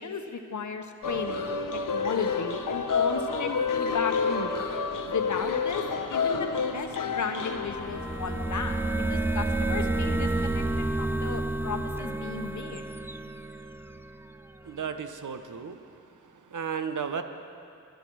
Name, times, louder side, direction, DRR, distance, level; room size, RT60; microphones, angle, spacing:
voice 1, 0.0-1.6 1.9-4.5 5.1-8.8 9.1-12.8, left 5 dB, 70° left, 5 dB, 1.0 m, -35 dB
sound 1, 1.0-8.8, left 5 dB, 90° left, 0.8 m, -29 dB
sound 2, 7.7-14.4, right 2 dB, 10° right, 0.3 m, -30 dB
voice 2, 14.6-15.8 16.5-17.2, right 6 dB, 75° right, 8 dB, 0.9 m, -33 dB
20.5 x 10.5 x 4.6 m, 2.5 s
wide cardioid pair, 110°, 31 cm